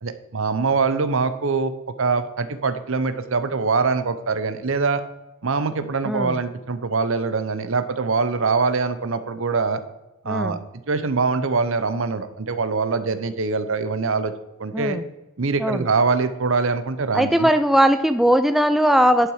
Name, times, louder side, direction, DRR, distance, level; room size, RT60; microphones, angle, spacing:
voice 1, 0.0-1.7 2.0-5.0 5.4-9.8 10.2-10.6 10.9-14.3 14.6-15.0 15.4-17.5, right 4 dB, 65° right, 11 dB, 0.8 m, -23 dB
voice 2, 6.1-6.4 10.3-10.6 14.7-15.0 15.6-15.9 17.1-19.3, equal, ahead, 9 dB, 0.4 m, -19 dB
11.0 x 6.0 x 4.8 m, 1.0 s
head